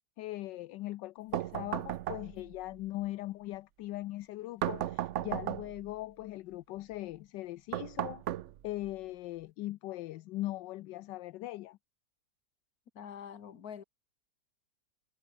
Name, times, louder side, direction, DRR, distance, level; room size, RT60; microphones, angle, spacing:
voice 1, 0.2-8.2 8.6-11.8, left 16 dB, 80° left, 1.3 m, -40 dB
sound 1, 1.3-2.6 4.6-5.9 7.7-8.9, right 12 dB, 80° right, 0.6 m, -35 dB
voice 2, 13.0-13.8, left 8 dB, 55° left, 1.9 m, -45 dB
omnidirectional pair, 1.9 m